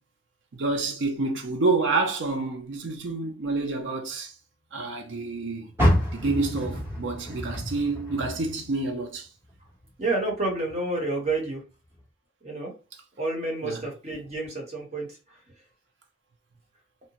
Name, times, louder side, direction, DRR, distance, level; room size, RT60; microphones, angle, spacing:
voice 1, 0.5-4.3 4.7-5.7 6.1-9.3 13.6-13.8, right 3 dB, 80° right, 0.6 m, -28 dB
Car, 5.7-9.0 9.4-10.8 11.2-11.3 11.9-12.0, equal, 15° right, 0.9 m, -28 dB
voice 2, 10.0-11.6 12.4-12.7 13.2-15.2, right 2 dB, 35° right, 1.0 m, -29 dB
2.8 x 2.1 x 2.8 m
head